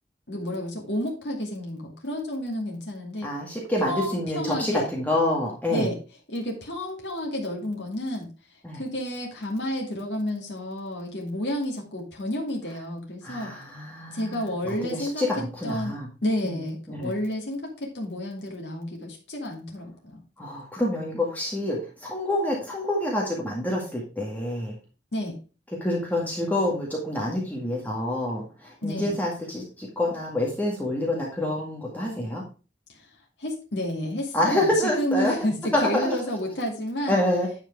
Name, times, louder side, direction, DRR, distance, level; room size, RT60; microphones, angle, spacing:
voice 1, 0.3-3.3 3.8-4.9 5.7-6.0 6.3-8.3 8.7-13.6 14.1-15.3 15.6-20.2 25.1-25.4 28.8-29.1 32.9-33.1 33.4-34.7 35.0-37.2, equal, 85° left, -1 dB, 2.4 m, -30 dB
voice 2, 3.2-5.9 8.6-8.8 13.2-14.5 14.8-16.1 16.4-16.6 16.9-17.1 20.4-24.8 25.8-32.4 34.3-35.3 35.7-36.2 37.1-37.5, left 1 dB, 10° left, -3 dB, 1.9 m, -27 dB
10.5 x 4.9 x 4.6 m, 0.33 s
head